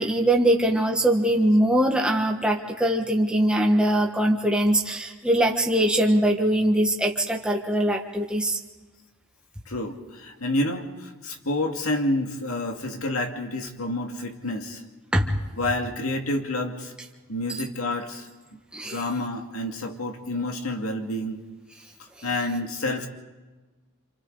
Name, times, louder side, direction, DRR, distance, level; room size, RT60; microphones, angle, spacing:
voice 1, 0.0-8.6 15.1-15.3 18.7-19.0, right 1 dB, 5° right, 0 dB, 1.5 m, -22 dB
voice 2, 9.7-14.8 15.5-16.9 17.3-18.3 18.8-21.4 22.2-23.1, left 1 dB, 85° left, 3 dB, 2.3 m, -29 dB
28.0 x 27.5 x 4.1 m, 1.2 s
head